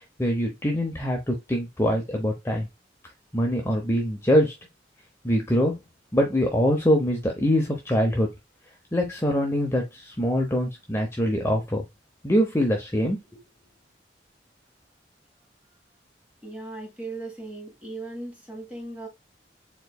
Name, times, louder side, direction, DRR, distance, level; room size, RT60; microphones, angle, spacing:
voice 1, 0.2-2.7 3.3-4.5 5.2-5.8 6.1-8.3 8.9-11.8 12.2-13.2, equal, 15° left, 0.8 m, -23 dB
voice 2, 16.4-19.1, right 2 dB, 10° right, 1.7 m, -37 dB
4.5 x 3.8 x 2.2 m
head